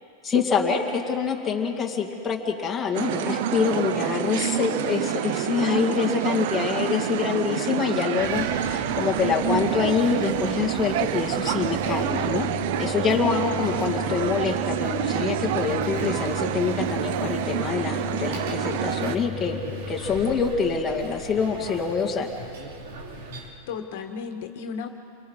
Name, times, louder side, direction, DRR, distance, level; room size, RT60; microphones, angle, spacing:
voice 1, 0.2-12.5 12.8-22.3, left 6 dB, 15° left, -1 dB, 2.2 m, -26 dB
sound 1, 2.9-19.2, right 11 dB, 60° right, 0.7 m, -28 dB
sound 2, 8.2-23.5, left 2 dB, 75° right, 4.1 m, -36 dB
voice 2, 8.6-9.0 13.7-13.9 14.2-14.3 23.7-24.9, left 6 dB, 65° left, 4 dB, 1.8 m, -36 dB
29.0 x 23.5 x 5.6 m, 2.6 s
supercardioid pair, 155°, 0 cm